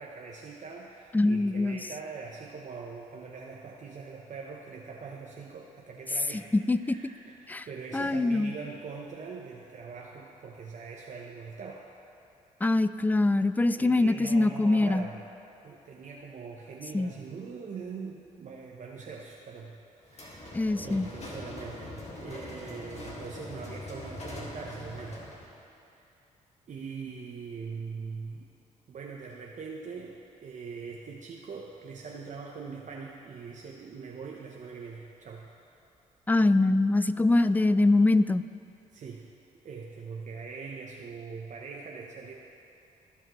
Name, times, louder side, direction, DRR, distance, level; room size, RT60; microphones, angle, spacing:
voice 1, 0.0-6.6 6.8-11.8 13.8-15.2 15.6-19.7 20.1-25.2 25.9-26.1 26.7-28.5 28.9-30.2 30.4-35.5 38.9-39.2 39.6-42.3, right 5 dB, 55° right, -1 dB, 0.8 m, -42 dB
voice 2, 1.1-1.8 6.7-7.0 7.5-7.7 7.9-8.5 12.6-15.0 16.9-17.1 20.5-21.1 36.3-38.4, left 2 dB, 10° left, 13 dB, 0.3 m, -23 dB
sound 1, 20.1-25.5, left 1 dB, 45° left, 2.0 m, -42 dB
16.5 x 5.7 x 3.1 m, 2.7 s
supercardioid pair, 65°, 15 cm